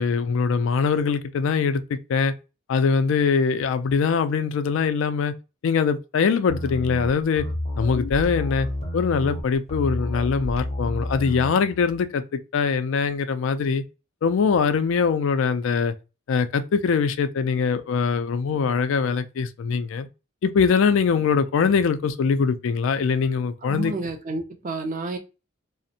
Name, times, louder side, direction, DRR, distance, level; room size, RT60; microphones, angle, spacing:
voice 1, 0.0-2.3 2.7-5.3 5.6-7.5 7.8-8.7 8.9-13.8 14.2-15.9 16.3-20.1 20.4-23.9, left 5 dB, 65° left, 0.3 m, -22 dB
sound 1, 6.5-11.5, left 1 dB, 30° left, 0.6 m, -30 dB
voice 2, 23.6-25.2, right 3 dB, 40° right, 0.5 m, -30 dB
2.5 x 2.0 x 2.7 m
head